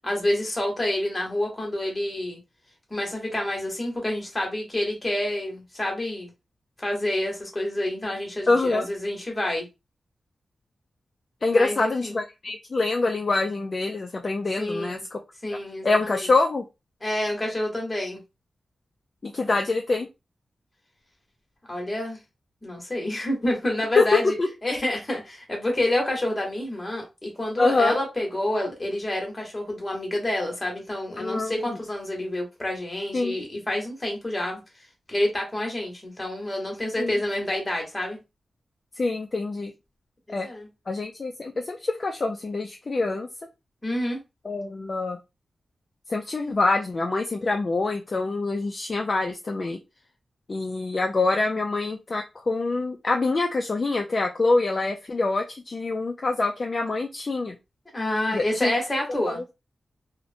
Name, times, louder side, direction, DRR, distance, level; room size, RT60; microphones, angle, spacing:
voice 1, 0.0-2.4 2.9-6.3 6.8-9.7 11.5-12.2 14.6-15.0 15.4-16.3 17.0-18.2 21.7-22.2 22.6-24.4 24.6-34.6 35.1-38.2 40.3-40.7 43.8-44.2 57.9-59.4, left 1 dB, 20° left, 1.0 m, -28 dB
voice 2, 8.5-8.9 11.4-15.2 15.8-16.6 19.2-20.1 24.0-24.1 24.4-24.5 27.6-27.9 31.2-31.8 33.1-33.3 37.0-37.2 39.0-39.7 40.3-40.5 40.9-43.3 44.5-45.2 46.1-49.8 50.5-57.6 58.3-58.7 59.3-59.4, left 3 dB, 35° left, 0.3 m, -25 dB
2.8 x 2.0 x 2.5 m
wide cardioid pair, 160°, 0 cm